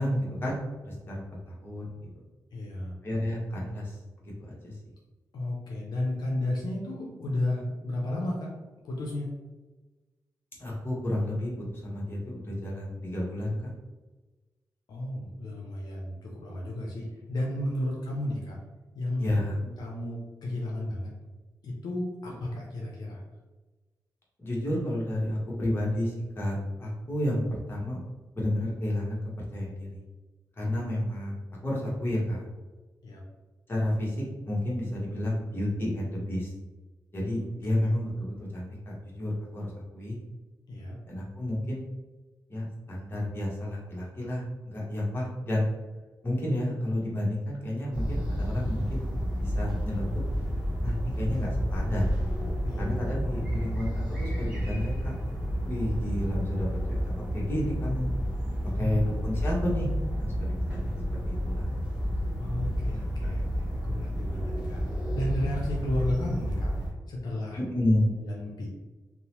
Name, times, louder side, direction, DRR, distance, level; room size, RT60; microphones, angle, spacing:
voice 1, 0.0-2.1 3.0-4.0 4.2-4.7 10.6-13.7 17.8-18.0 19.2-19.6 24.4-28.0 28.3-30.0 30.6-32.4 33.7-36.5 37.1-40.2 41.1-41.8 42.5-45.6 46.2-49.1 49.4-50.0 50.8-52.1 52.8-55.1 55.6-57.0 57.3-58.1 58.8-61.0 61.3-61.7 63.2-63.3 67.6-68.2, left 1 dB, 30° left, -5 dB, 1.0 m, -31 dB
voice 2, 2.5-2.9 3.6-3.7 5.3-8.5 8.8-9.3 14.9-18.6 18.9-19.3 19.6-21.1 21.6-23.2 33.0-33.2 37.6-37.8 40.7-41.0 52.6-52.9 53.5-53.7 58.7-59.0 62.4-64.8 65.1-66.7 67.1-67.6 68.2-68.7, left 1 dB, 80° left, -2 dB, 0.5 m, -33 dB
morning in town, 47.9-66.9, equal, 10° right, 0.9 m, -30 dB
2.8 x 2.0 x 2.9 m, 1.2 s
cardioid pair, 75°, 7 cm